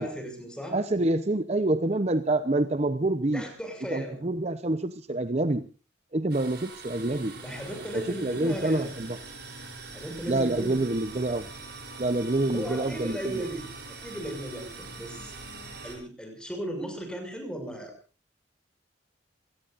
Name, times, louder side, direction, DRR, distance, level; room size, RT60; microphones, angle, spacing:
voice 1, 0.0-0.8 3.3-4.2 7.4-9.0 9.9-10.8 12.5-15.3 15.8-17.9, right 1 dB, 5° left, 6.4 m, -36 dB
voice 2, 0.7-3.4 3.9-5.6 6.1-7.3 7.9-9.2 10.3-11.5 12.0-13.5, right 2 dB, 35° right, 0.8 m, -27 dB
sound 1, 6.3-15.9, right 3 dB, 60° right, 6.7 m, -43 dB
28.0 x 19.0 x 2.6 m
head